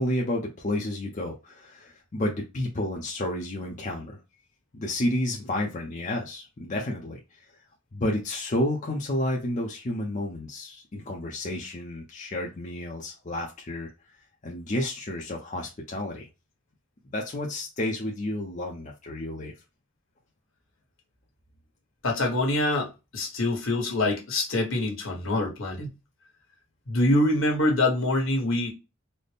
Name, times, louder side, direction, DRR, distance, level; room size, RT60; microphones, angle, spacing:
voice 1, 0.0-4.2 4.7-7.4 7.9-13.9 14.4-16.3 17.1-19.5, left 1 dB, 40° left, 0.6 m, -31 dB
voice 2, 22.0-25.9 26.9-28.7, left 1 dB, 70° left, 1.3 m, -25 dB
4.0 x 2.1 x 3.4 m
head